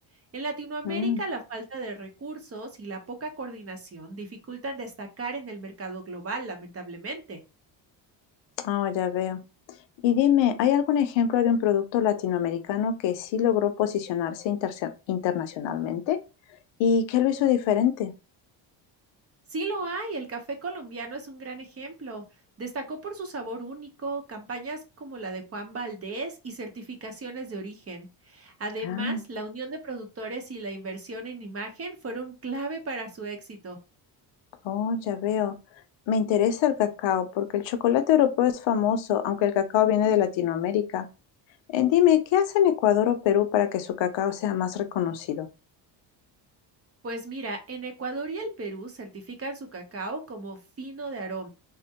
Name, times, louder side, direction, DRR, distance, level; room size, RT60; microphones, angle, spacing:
voice 1, 0.3-7.4 19.5-22.2 22.6-33.8 47.0-51.5, right 3 dB, 30° right, 0.8 m, -35 dB
voice 2, 0.8-1.2 8.6-9.4 10.0-16.2 16.8-18.1 28.8-29.2 34.6-35.5 36.1-41.1 41.7-45.5, left 9 dB, 70° left, 0.6 m, -24 dB
3.5 x 2.1 x 2.8 m
cardioid pair, 110°, 46 cm